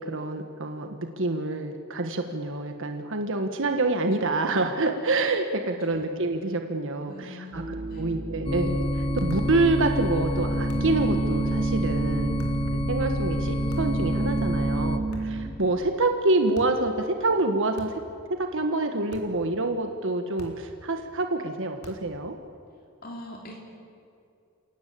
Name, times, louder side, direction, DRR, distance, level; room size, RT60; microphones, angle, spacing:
voice 1, 0.0-7.6 8.0-12.5 12.7-18.0 18.4-22.4, right 2 dB, 65° right, 5 dB, 1.5 m, -27 dB
voice 2, 7.1-8.1 23.0-23.6, left 1 dB, 45° left, -1 dB, 3.3 m, -42 dB
sound 1, 7.5-15.5, right 3 dB, 45° right, 5.5 m, -32 dB
sound 2, 8.4-15.0, equal, 25° left, 1.6 m, -28 dB
sound 3, 9.3-9.6 10.7-11.0 12.4-12.7 13.7-14.1 15.1-15.5 16.5-16.9 17.7-18.2 19.1-19.4 20.4-20.8 21.8-22.2, equal, 90° left, 3.7 m, -45 dB
29.5 x 17.5 x 8.6 m, 2.5 s
head